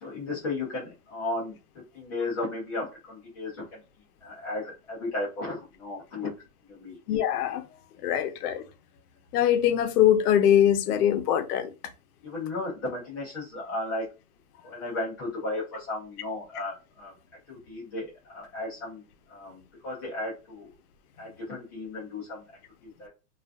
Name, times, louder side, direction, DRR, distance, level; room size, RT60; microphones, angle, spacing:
voice 1, 0.0-3.8 4.2-6.3 6.7-7.0 12.2-14.0 14.6-17.1 17.5-19.0 19.3-20.7 21.2-22.4 22.8-23.1, left 2 dB, 15° left, 0.4 m, -35 dB
voice 2, 7.1-7.6 8.0-8.6 9.3-11.7, left 10 dB, 75° left, 0.6 m, -22 dB
2.5 x 2.3 x 2.2 m
supercardioid pair, 160°, 47 cm